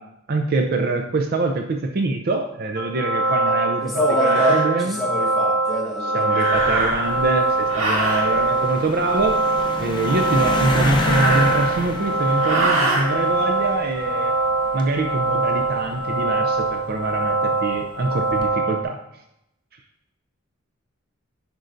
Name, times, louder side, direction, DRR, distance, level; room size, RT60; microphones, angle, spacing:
voice 1, 0.0-5.0 6.0-9.4 9.8-14.3 14.7-19.0, right 3 dB, 45° right, 4 dB, 0.5 m, -24 dB
sound 1, 2.8-18.8, right 2 dB, 55° left, 0.9 m, -23 dB
sound 2, 3.2-3.4 4.1-4.6 6.3-7.2 7.7-8.3 10.5-11.9 12.4-13.1, right 2 dB, 75° right, 1.6 m, -24 dB
voice 2, 3.4-6.8, equal, ahead, -6 dB, 1.7 m, -25 dB
sound 3, 6.5-17.3 18.0-18.5, left 1 dB, 25° left, 0.7 m, -31 dB
10.5 x 5.3 x 2.6 m, 0.83 s
head